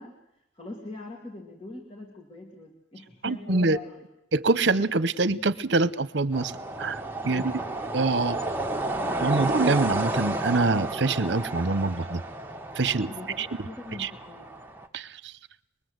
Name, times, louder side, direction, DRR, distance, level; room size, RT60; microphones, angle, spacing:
voice 1, 0.0-4.0 7.2-7.7 13.1-14.5, left 2 dB, 30° left, 1 dB, 2.5 m, -42 dB
voice 2, 3.2-3.8 4.3-6.5 6.8-7.0 7.3-7.5 7.9-8.4 9.2-12.2 12.8-13.1 13.4-13.5 14.0-14.1 14.9-15.3, right 3 dB, 60° right, 16 dB, 0.9 m, -25 dB
sound 1, 6.3-14.9, right 2 dB, 10° right, 1.4 m, -32 dB
23.5 x 22.0 x 8.0 m, 0.81 s
head